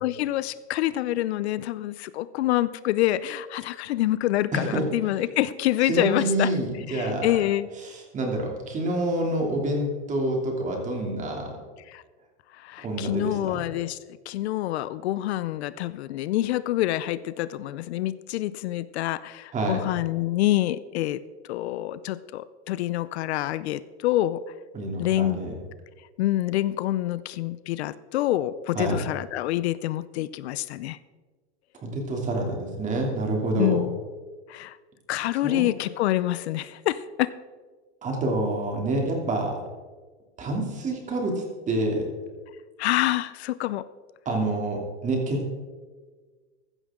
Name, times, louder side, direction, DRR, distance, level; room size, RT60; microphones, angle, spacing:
voice 1, 0.0-6.5 6.9-7.7 11.9-12.0 12.6-14.0 14.3-21.2 21.5-24.4 25.0-25.4 26.2-31.0 33.6-34.0 34.5-34.8 35.1-37.3 42.8-43.9, left 15 dB, 70° left, 17 dB, 0.6 m, -26 dB
voice 2, 4.5-4.8 5.8-7.4 7.8-11.6 12.8-13.6 19.5-19.8 24.7-25.5 28.7-29.0 31.7-33.8 35.4-35.7 38.0-39.6 40.4-42.1 44.2-45.4, right 1 dB, 20° right, 1 dB, 2.9 m, -27 dB
15.5 x 12.0 x 3.8 m, 1.4 s
supercardioid pair, 145°, 34 cm